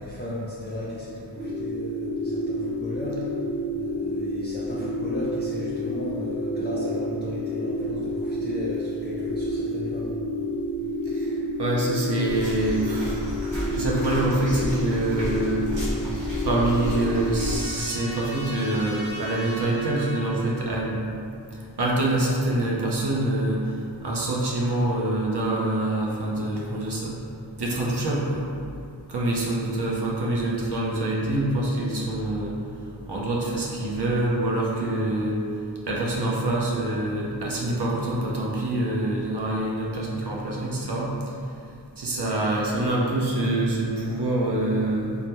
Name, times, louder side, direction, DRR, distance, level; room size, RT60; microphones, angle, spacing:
voice 1, 0.0-3.3 3.7-10.2, left 1 dB, 25° left, -7 dB, 0.4 m, -35 dB
sound 1, 1.4-17.6, equal, 15° right, 0.9 m, -29 dB
voice 2, 11.1-13.2 13.7-15.7 16.4-21.0 21.8-23.7 24.0-27.1 27.6-28.4 29.1-32.5 33.1-35.4 35.9-41.1 42.0-45.2, right 1 dB, 65° right, -4 dB, 0.6 m, -25 dB
sound 2, 12.3-17.8, equal, 90° right, 1.1 m, -33 dB
Trumpet, 15.9-20.7, left 1 dB, 40° left, 0.8 m, -40 dB
3.3 x 2.1 x 2.8 m, 2.5 s
wide cardioid pair, 40°, 44 cm